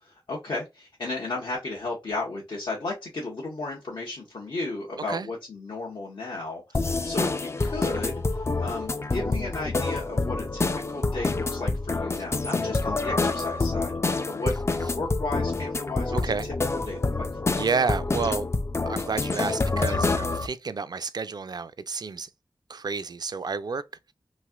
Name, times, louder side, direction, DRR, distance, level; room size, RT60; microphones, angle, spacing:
voice 1, 0.0-16.1 16.9-17.7, left 2 dB, 80° left, 1.0 m, -34 dB
sound 1, 6.7-20.5, left 3 dB, 35° left, 0.3 m, -27 dB
voice 2, 16.1-16.5 17.6-18.5 18.9-22.3 22.7-23.8, right 5 dB, 55° right, 0.3 m, -30 dB
3.1 x 2.8 x 2.3 m
wide cardioid pair, 55°, 8 cm